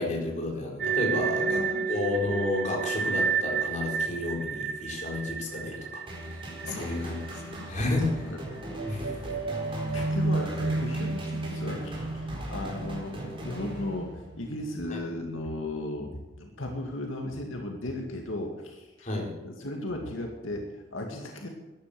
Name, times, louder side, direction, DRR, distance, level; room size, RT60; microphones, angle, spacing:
voice 1, 0.0-7.4 7.7-8.3 8.9-9.2 14.9-15.0 19.0-19.3, left 2 dB, 40° left, -2 dB, 4.4 m, -31 dB
sound 1, 0.8-7.6 7.9-8.0 8.6-13.9, right 4 dB, 55° right, 0.9 m, -31 dB
voice 2, 1.1-1.9 6.6-6.9 7.6-7.7 8.2-8.6 9.2-9.5 9.9-21.5, left 1 dB, 80° left, 2 dB, 2.2 m, -36 dB
sound 2, 6.1-14.4, equal, 25° right, 4.0 m, -39 dB
14.0 x 10.5 x 6.8 m, 1.2 s
head